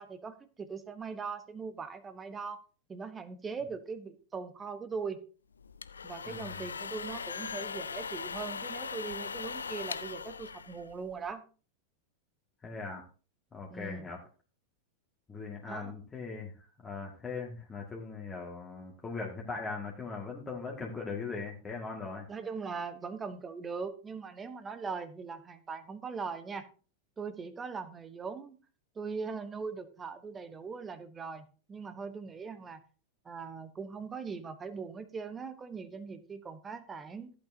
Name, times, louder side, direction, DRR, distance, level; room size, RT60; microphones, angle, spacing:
voice 1, 0.0-2.6 2.9-5.2 6.0-11.4 13.7-14.0 15.7-16.0 22.3-26.7 27.2-28.6 28.9-32.8 33.2-37.3, right 5 dB, 20° right, 12 dB, 1.1 m, -40 dB
sound 1, 5.6-11.3, left 5 dB, 75° left, 0.5 m, -40 dB
voice 2, 6.3-6.7 12.6-13.0 13.5-14.2 15.3-22.3, left 4 dB, 15° left, -2 dB, 2.0 m, -40 dB
14.5 x 8.6 x 2.8 m, 0.37 s
figure-of-eight pair, 90°, 0 cm